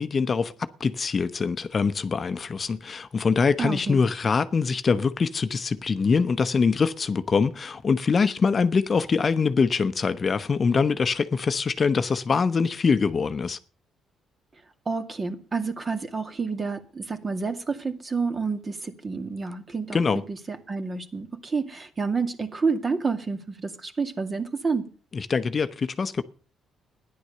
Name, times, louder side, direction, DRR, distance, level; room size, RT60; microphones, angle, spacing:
voice 1, 0.0-13.6 19.9-20.2 25.1-26.2, left 5 dB, 40° left, 0.8 m, -24 dB
voice 2, 3.6-4.0 14.9-20.0 20.3-24.9, right 4 dB, 30° right, 2.2 m, -29 dB
13.5 x 10.5 x 6.7 m
cardioid pair, 90°, 0 cm